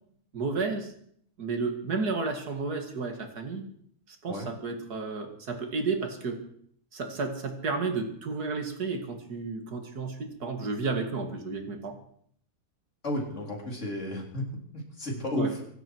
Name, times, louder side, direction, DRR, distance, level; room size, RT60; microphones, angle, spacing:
voice 1, 0.3-0.9 1.4-3.6 4.2-6.4 6.9-12.0 15.3-15.5, right 4 dB, 70° right, 5 dB, 2.6 m, -32 dB
voice 2, 13.0-14.4 14.7-15.6, left 1 dB, 45° left, 0 dB, 3.9 m, -32 dB
24.5 x 12.0 x 4.7 m, 0.64 s
omnidirectional pair, 1.7 m